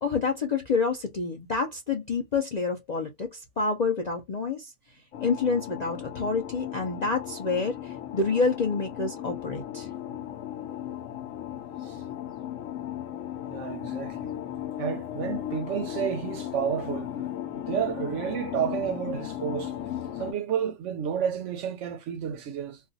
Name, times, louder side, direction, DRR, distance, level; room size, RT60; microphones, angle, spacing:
voice 1, 0.0-4.7 5.2-9.9, left 4 dB, 50° left, 0.5 m, -28 dB
sound 1, 5.1-20.3, left 11 dB, 70° left, 0.9 m, -36 dB
voice 2, 13.5-14.3 14.8-17.1 17.7-19.7 20.2-22.8, right 8 dB, 70° right, 0.8 m, -31 dB
2.4 x 2.3 x 3.9 m
omnidirectional pair, 1.4 m